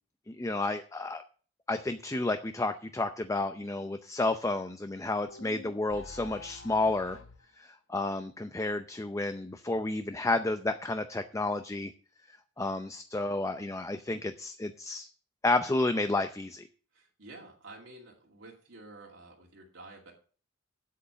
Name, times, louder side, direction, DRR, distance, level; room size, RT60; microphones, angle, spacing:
voice 1, 0.3-1.2 1.7-7.2 7.6-11.9 12.3-15.1 15.4-16.7, left 2 dB, 15° left, 9 dB, 0.5 m, -31 dB
sound 1, 5.3-7.4, left 4 dB, 80° left, 1.3 m, -47 dB
voice 2, 16.9-20.1, right 2 dB, 70° right, -2 dB, 2.5 m, -50 dB
8.4 x 7.9 x 6.8 m, 0.41 s
head